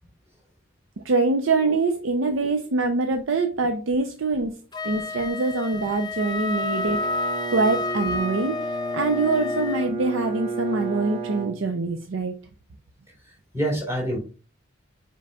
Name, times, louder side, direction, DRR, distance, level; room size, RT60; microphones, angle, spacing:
voice 1, 1.0-4.5 4.8-12.3, right 3 dB, 85° right, 6 dB, 0.6 m, -24 dB
voice 2, 2.2-2.5 13.1-14.2, equal, 15° right, -3 dB, 3.6 m, -29 dB
Wind instrument woodwind instrument, 4.7-9.9, left 3 dB, 20° left, 0.4 m, -30 dB
Bowed string instrument, 6.7-12.1, right 4 dB, 30° right, 1.3 m, -33 dB
7.5 x 5.4 x 2.3 m, 0.36 s
head